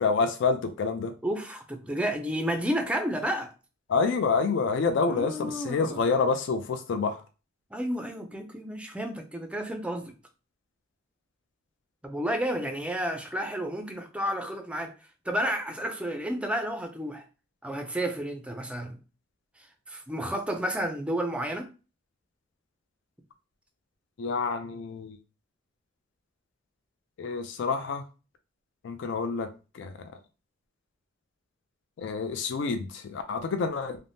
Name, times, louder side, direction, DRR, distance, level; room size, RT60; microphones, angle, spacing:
voice 1, 0.0-1.1 3.9-7.2 24.2-25.2 27.2-28.0 28.8-30.1 32.0-34.0, left 4 dB, 65° left, 0.4 m, -28 dB
voice 2, 1.2-3.5 5.1-6.0 7.7-10.1 12.0-14.9 15.3-17.2 17.6-19.0 19.9-21.7, equal, 5° right, 0.4 m, -31 dB
3.3 x 2.0 x 2.6 m
head